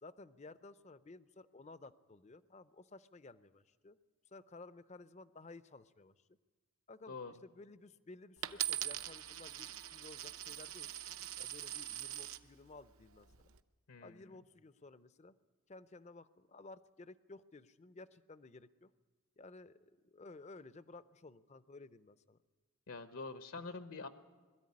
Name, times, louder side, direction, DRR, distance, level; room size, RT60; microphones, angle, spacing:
voice 1, 0.0-4.0 4.3-6.3 6.9-10.9 11.4-13.5 14.0-15.3 15.7-18.9 19.4-22.4, left 3 dB, 30° left, 15 dB, 0.5 m, -55 dB
Coin (dropping), 8.4-12.4 13.1-13.6, right 12 dB, 70° right, 0.8 m, -42 dB
voice 2, 13.9-14.3 22.9-24.1, left 4 dB, 70° left, 9 dB, 0.9 m, -46 dB
21.5 x 13.5 x 9.6 m, 1.4 s
head